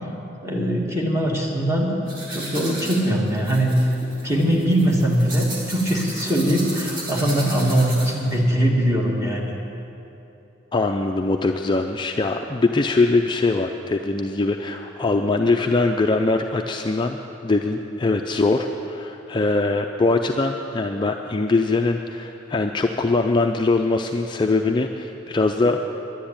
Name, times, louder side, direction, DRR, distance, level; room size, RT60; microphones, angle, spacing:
voice 1, 0.4-1.9 2.3-3.9 4.2-9.5, right 1 dB, 15° right, -2 dB, 1.8 m, -21 dB
sound 1, 2.1-8.3, right 1 dB, 45° right, 3.0 m, -35 dB
voice 2, 10.7-25.9, left 3 dB, 25° left, 4 dB, 0.4 m, -22 dB
11.0 x 10.0 x 8.7 m, 2.9 s
head